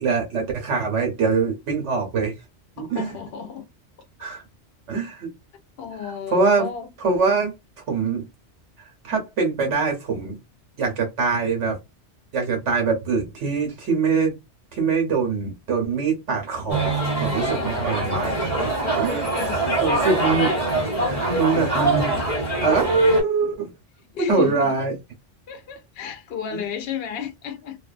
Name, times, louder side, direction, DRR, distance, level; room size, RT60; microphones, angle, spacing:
voice 1, 0.0-2.3 2.8-3.2 4.2-4.4 4.9-5.3 6.3-6.7 7.0-7.5 7.9-8.3 9.0-10.4 10.8-11.8 12.3-14.3 14.7-18.3 18.6-18.7 19.0-19.3 19.6-22.1 22.6-23.7 24.2-25.0 26.5-26.6, right 4 dB, 75° right, 1.1 m, -23 dB
voice 2, 2.8-3.7 5.8-6.9 17.4-18.4 19.3-20.4 21.5-21.7 24.1-24.8 25.5-27.8, left 8 dB, 60° left, 0.8 m, -33 dB
sound 1, 16.7-23.2, right 2 dB, 35° left, 0.9 m, -24 dB
2.5 x 2.2 x 2.4 m
omnidirectional pair, 1.2 m